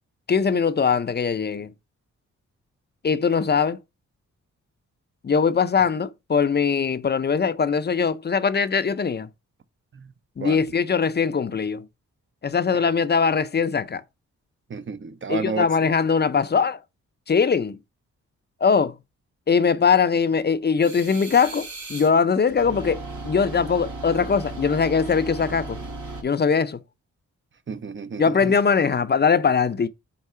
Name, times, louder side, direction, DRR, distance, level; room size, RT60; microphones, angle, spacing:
voice 1, 0.3-1.7 3.0-3.8 5.2-9.3 10.4-11.8 12.4-14.0 15.3-16.8 17.3-17.8 18.6-18.9 19.5-25.8 26.2-26.8 28.2-29.9, left 6 dB, 35° left, 0.5 m, -21 dB
voice 2, 14.7-15.6 27.7-28.5, right 5 dB, 40° right, 0.8 m, -32 dB
sound 1, 20.8-22.1 22.5-26.2, right 2 dB, 70° right, 3.4 m, -36 dB
4.7 x 4.0 x 5.5 m
cardioid pair, 65°, 30 cm